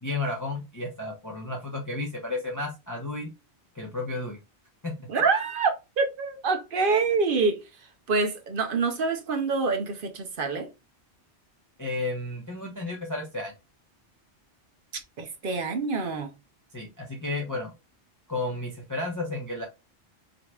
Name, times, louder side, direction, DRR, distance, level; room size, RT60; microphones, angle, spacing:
voice 1, 0.0-3.3 3.7-4.4 4.8-5.0 11.8-13.5 16.7-17.7 18.3-19.7, left 2 dB, 20° left, 0.8 m, -32 dB
voice 2, 5.1-7.6 8.1-10.7 15.2-16.3, right 4 dB, 55° right, 0.9 m, -26 dB
5.1 x 2.9 x 2.3 m
omnidirectional pair, 1.2 m